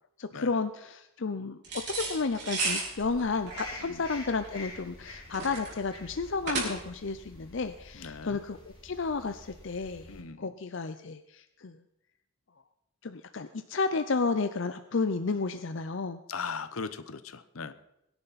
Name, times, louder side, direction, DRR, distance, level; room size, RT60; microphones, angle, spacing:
voice 1, 0.2-1.6 1.9-11.8 13.0-16.2, left 4 dB, 60° left, 9 dB, 0.6 m, -32 dB
sound 1, 1.6-7.1, right 3 dB, 50° right, 4.9 m, -34 dB
sound 2, 2.9-10.2, left 2 dB, 25° left, 4.5 m, -48 dB
voice 2, 7.9-8.4 10.1-10.5 16.3-17.7, left 5 dB, 75° left, 14 dB, 0.9 m, -38 dB
23.0 x 10.5 x 4.2 m, 0.84 s
head